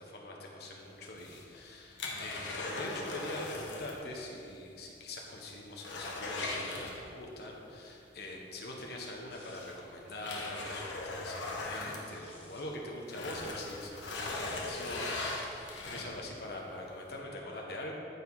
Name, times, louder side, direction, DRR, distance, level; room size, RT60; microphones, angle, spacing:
voice 1, 0.0-17.9, left 1 dB, 60° left, -1 dB, 1.3 m, -43 dB
sound 1, 1.1-4.1 4.3-4.4 4.9-5.0 5.4-7.4 8.8-8.9 9.6-12.7 13.0-16.3 16.9-17.0, left 2 dB, 80° left, 1.4 m, -39 dB
sound 2, 9.3-9.9 11.8-12.6 14.4-14.8, left 2 dB, 35° left, 1.5 m, -57 dB
14.5 x 4.9 x 4.1 m, 2.6 s
head